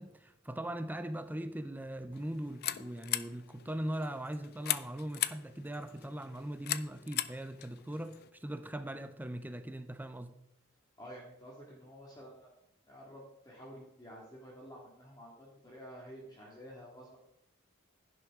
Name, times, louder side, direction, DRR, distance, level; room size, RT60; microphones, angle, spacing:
voice 1, 0.0-10.3, right 1 dB, 10° right, 0.5 m, -40 dB
sound 1, 2.1-8.3, left 13 dB, 45° left, 0.4 m, -39 dB
voice 2, 11.0-12.5 12.9-17.2, equal, 20° left, 2.0 m, -50 dB
11.0 x 10.5 x 3.7 m
head